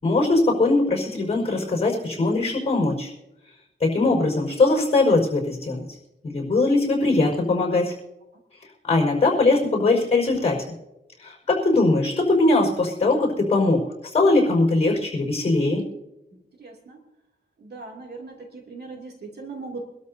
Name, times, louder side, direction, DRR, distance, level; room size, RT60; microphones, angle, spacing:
voice 1, 0.0-3.1 3.8-5.8 6.2-7.9 8.9-10.6 11.2-13.8 14.1-15.8, left 2 dB, 35° left, 0 dB, 5.0 m, -21 dB
voice 2, 16.6-17.0 17.6-19.8, right 3 dB, 60° right, 0 dB, 2.7 m, -38 dB
25.0 x 12.5 x 2.8 m, 0.90 s
wide cardioid pair, 145°, 19 cm